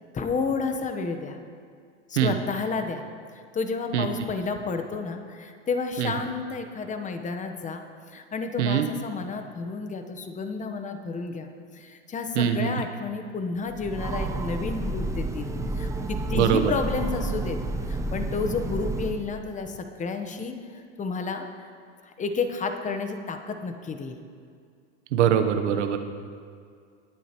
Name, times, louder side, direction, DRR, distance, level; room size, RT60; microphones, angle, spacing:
voice 1, 0.1-1.4 2.1-3.1 3.5-15.5 15.7-17.6 17.9-21.7 22.0-24.2, left 4 dB, 20° left, 6 dB, 1.0 m, -31 dB
voice 2, 12.4-12.7 16.3-16.6 25.1-26.0, right 9 dB, 80° right, 7 dB, 1.1 m, -22 dB
Train, 13.7-19.4, right 2 dB, 10° right, 0.5 m, -30 dB
20.0 x 8.1 x 3.0 m, 2.2 s
hypercardioid pair, 110°, 35 cm